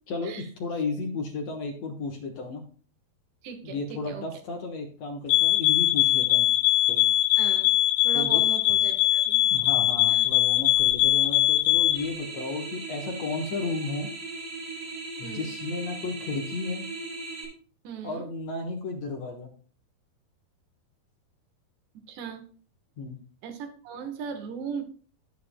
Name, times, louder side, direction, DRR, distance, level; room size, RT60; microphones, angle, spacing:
voice 1, 0.1-2.6 3.6-6.5 6.9-7.1 8.1-8.4 9.5-14.1 15.2-16.8 18.0-19.5 23.0-23.2, left 3 dB, 65° left, 1 dB, 1.7 m, -33 dB
voice 2, 3.4-4.3 7.4-7.7 8.0-9.4 10.1-10.3 15.2-15.5 17.8-18.3 22.1-22.4 23.4-24.8, right 6 dB, 80° right, 5 dB, 3.4 m, -38 dB
sound 1, 5.3-12.1, left 14 dB, 85° left, 2.7 m, -22 dB
sound 2, 11.9-17.4, right 3 dB, 55° right, 4.6 m, -38 dB
18.0 x 6.7 x 2.2 m, 0.43 s
omnidirectional pair, 4.9 m